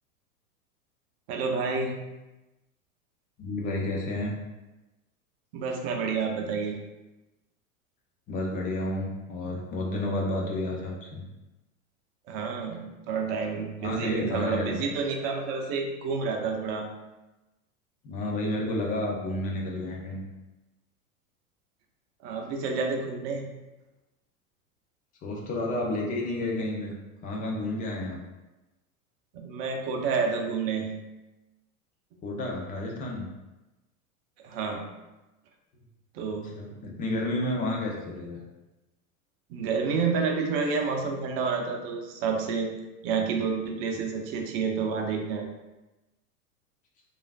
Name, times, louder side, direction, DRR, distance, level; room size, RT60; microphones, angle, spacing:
voice 1, 1.3-1.9 5.5-6.8 12.3-16.9 22.2-23.5 29.3-31.0 34.4-34.8 36.1-36.5 39.5-42.7 43.0-45.5, right 5 dB, 45° right, 3 dB, 0.6 m, -29 dB
voice 2, 3.4-4.3 8.3-11.2 13.8-14.8 18.0-20.2 25.2-26.9 27.2-28.2 32.2-33.3 36.5-38.5, left 1 dB, 20° left, -1 dB, 0.3 m, -31 dB
3.1 x 2.4 x 2.3 m, 1.0 s
hypercardioid pair, 100°, 43 cm